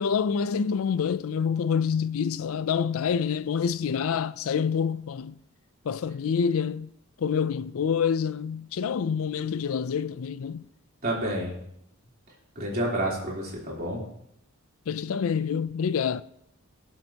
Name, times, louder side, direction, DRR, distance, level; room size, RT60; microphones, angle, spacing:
voice 1, 0.0-5.4 5.8-6.9 7.2-10.7 14.9-16.2, left 6 dB, 70° left, 0.4 m, -27 dB
voice 2, 11.0-11.6 12.6-14.0, right 1 dB, 40° right, 3.5 m, -29 dB
19.5 x 7.8 x 2.9 m
head